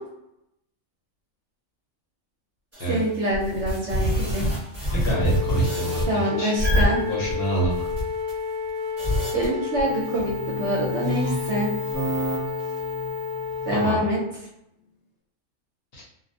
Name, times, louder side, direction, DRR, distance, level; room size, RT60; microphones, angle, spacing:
sound 1, 2.7-2.9 3.3-6.2 6.6-8.3 9.0-9.5 9.8-13.9, right 1 dB, 10° right, 0.9 m, -27 dB
voice 1, 2.9-4.5 6.1-7.0 9.3-11.7 13.7-14.2, right 1 dB, 60° right, -3 dB, 0.8 m, -25 dB
voice 2, 4.9-6.5 7.0-7.9 13.7-14.0 15.9-16.0, right 2 dB, 50° left, -6 dB, 0.8 m, -28 dB
Wind instrument woodwind instrument, 5.0-14.2, left 5 dB, 35° left, 0.4 m, -31 dB
2.4 x 2.1 x 2.6 m, 0.82 s
omnidirectional pair, 1.5 m